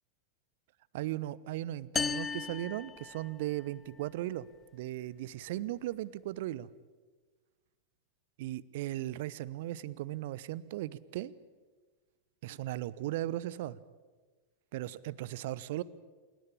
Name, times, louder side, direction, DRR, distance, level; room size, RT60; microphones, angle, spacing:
voice 1, 0.9-4.5 4.7-6.7 8.4-11.3 12.4-13.8 14.7-15.8, right 15 dB, 50° right, 21 dB, 0.8 m, -37 dB
sound 1, 2.0-3.7, left 6 dB, 20° left, 0.7 m, -36 dB
27.5 x 18.0 x 8.7 m, 1.4 s
figure-of-eight pair, 90°, 0 cm